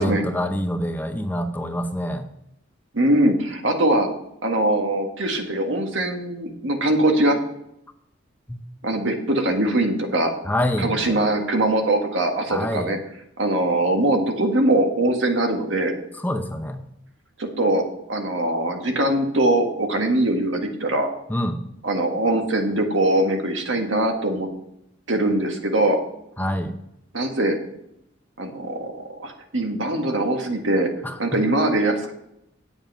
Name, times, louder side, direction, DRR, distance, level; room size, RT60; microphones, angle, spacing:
voice 1, 0.0-2.3 8.5-8.6 10.5-11.2 12.5-12.9 16.2-16.8 21.3-21.6 26.4-26.7 31.0-31.1, left 1 dB, 10° left, 7 dB, 0.7 m, -26 dB
voice 2, 2.9-4.1 4.4-7.4 8.8-10.3 10.8-13.0 13.4-15.9 17.4-21.1 21.8-24.5 25.1-26.0 27.1-27.5 28.4-30.9 31.2-32.1, right 1 dB, 75° right, 3 dB, 1.7 m, -22 dB
9.5 x 7.1 x 5.6 m, 0.78 s
head